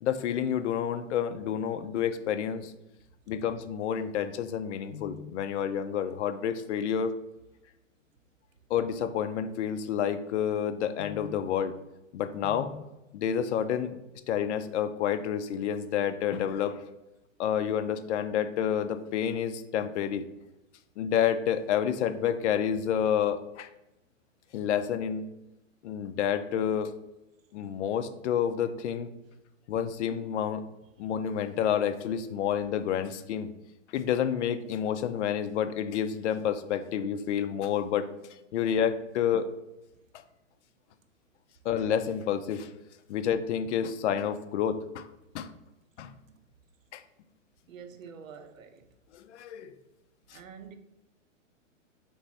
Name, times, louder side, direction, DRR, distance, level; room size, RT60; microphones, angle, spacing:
voice 1, 0.0-2.7 3.3-7.1 8.7-11.7 12.1-12.8 13.1-14.0 14.3-16.8 17.4-20.3 21.0-23.7 24.5-25.3 25.8-26.9 27.5-29.1 29.7-30.6 31.0-33.5 33.9-39.5 41.6-42.7 43.1-45.1 45.3-45.5 46.0-46.1 46.9-47.0 49.1-49.7 50.3-50.4, left 8 dB, 65° left, 0.5 m, -29 dB
voice 2, 47.7-48.9 50.3-50.7, right 6 dB, 85° right, 0.7 m, -47 dB
3.4 x 3.0 x 4.0 m
hypercardioid pair, 130°, 38 cm